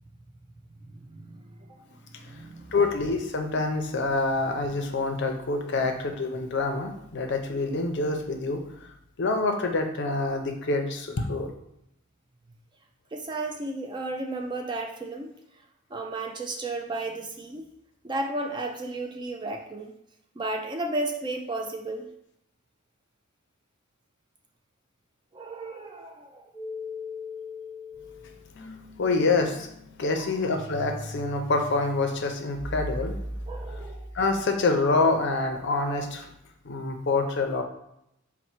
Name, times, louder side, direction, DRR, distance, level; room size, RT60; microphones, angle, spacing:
voice 1, 0.9-1.9 2.1-2.8 13.1-15.3 15.9-17.7 18.0-19.9 20.4-22.1 25.3-26.5 30.2-30.4 33.5-34.1, right 2 dB, 20° right, 3 dB, 0.3 m, -34 dB
voice 2, 2.7-8.9 9.2-11.5 28.6-28.7 29.0-29.7 30.0-33.2 34.1-36.3 36.6-37.6, left 3 dB, 55° left, 5 dB, 0.5 m, -26 dB
sound 1, 26.5-34.4, left 1 dB, ahead, 0.7 m, -39 dB
4.2 x 2.1 x 4.3 m, 0.78 s
head